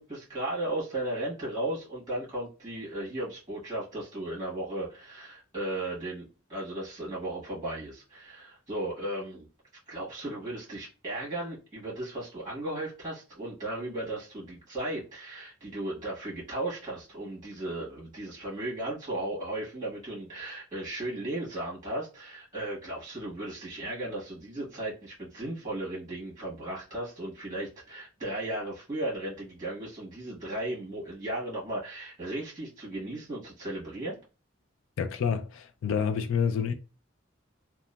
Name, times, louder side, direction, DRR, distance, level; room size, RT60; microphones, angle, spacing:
voice 1, 0.0-9.5 9.9-34.2, right 1 dB, 20° right, 1.3 m, -36 dB
voice 2, 35.0-36.7, left 6 dB, 85° left, 0.4 m, -28 dB
2.8 x 2.3 x 2.2 m
head